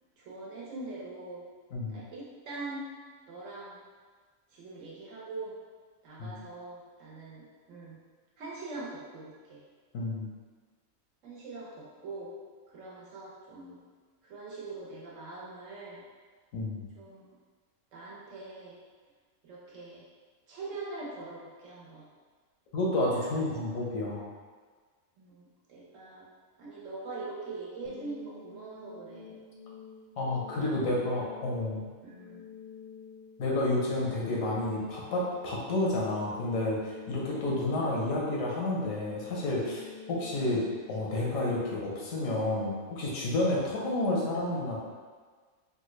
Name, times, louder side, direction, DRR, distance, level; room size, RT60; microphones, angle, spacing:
voice 1, 0.2-1.4 1.9-2.9 3.3-3.8 4.5-5.5 6.0-8.0 8.4-9.6 11.2-12.3 12.7-13.8 14.2-16.0 17.0-17.3 17.9-18.8 19.4-20.0 20.5-22.0 23.1-23.5 25.2-26.3 26.6-29.4 30.6-31.2 32.0-32.5 34.5-34.6, right 3 dB, 75° right, -6 dB, 1.2 m, -43 dB
voice 2, 9.9-10.3 16.5-16.9 22.7-24.3 30.2-31.9 33.4-44.8, left 2 dB, 90° left, -3 dB, 1.2 m, -30 dB
sound 1, 27.8-42.9, left 6 dB, 60° left, 0.6 m, -49 dB
3.7 x 2.2 x 3.0 m, 1.5 s
omnidirectional pair, 1.3 m